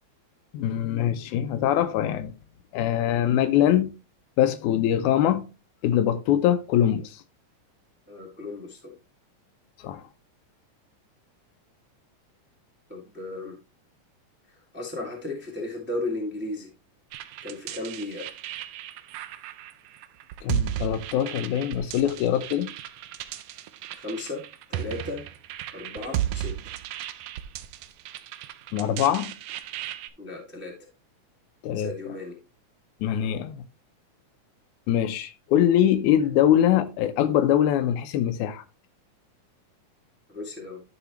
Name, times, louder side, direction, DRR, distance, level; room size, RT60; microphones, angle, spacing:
voice 1, 0.5-2.3 2.7-3.9 4.4-5.5 5.8-7.2 9.8-10.0 20.4-22.7 28.7-29.3 31.6-31.9 33.0-33.7 34.9-38.6, left 11 dB, 85° left, 2.1 m, -23 dB
voice 2, 8.1-8.9 12.9-13.5 14.7-16.7 17.4-18.3 23.9-24.4 24.7-25.2 25.7-26.5 30.2-30.7 31.7-32.3 40.3-40.8, left 2 dB, 5° right, 1.2 m, -35 dB
sound 1, 17.1-30.1, right 12 dB, 85° right, 1.4 m, -35 dB
12.0 x 4.8 x 3.0 m
omnidirectional pair, 3.4 m